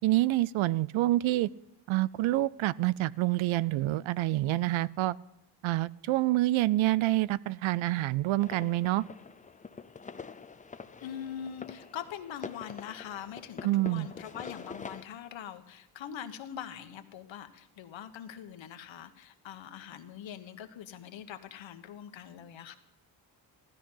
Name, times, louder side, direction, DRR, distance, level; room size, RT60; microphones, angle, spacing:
voice 1, 0.0-1.5 1.9-5.2 5.6-9.0 13.6-14.1, right 16 dB, 75° right, 21 dB, 0.6 m, -27 dB
sound 1, 8.4-15.0, left 5 dB, 15° left, 0.5 m, -45 dB
voice 2, 11.0-22.8, left 9 dB, 70° left, 8 dB, 1.4 m, -43 dB
15.5 x 13.0 x 5.6 m, 0.88 s
cardioid pair, 125°, 48 cm